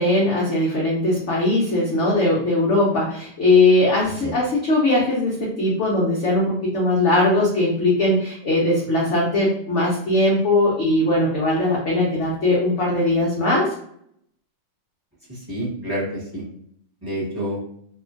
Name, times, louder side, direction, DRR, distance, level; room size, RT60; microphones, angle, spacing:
voice 1, 0.0-13.7, left 2 dB, 70° left, -4 dB, 0.7 m, -20 dB
voice 2, 15.3-16.4 17.0-17.6, right 1 dB, 15° right, -8 dB, 0.9 m, -28 dB
2.8 x 2.5 x 2.5 m, 0.69 s
omnidirectional pair, 2.0 m